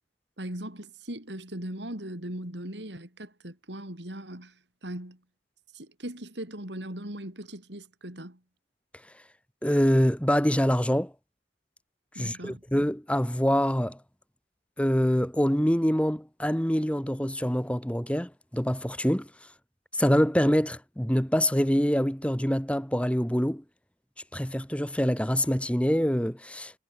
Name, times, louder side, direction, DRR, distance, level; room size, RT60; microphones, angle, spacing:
voice 1, 0.4-5.2 5.7-8.4 12.2-12.6, right 1 dB, 70° right, 5.2 m, -39 dB
voice 2, 9.6-11.1 12.2-14.0 14.8-19.3 19.9-23.6 24.3-26.8, equal, 5° left, 2.4 m, -25 dB
head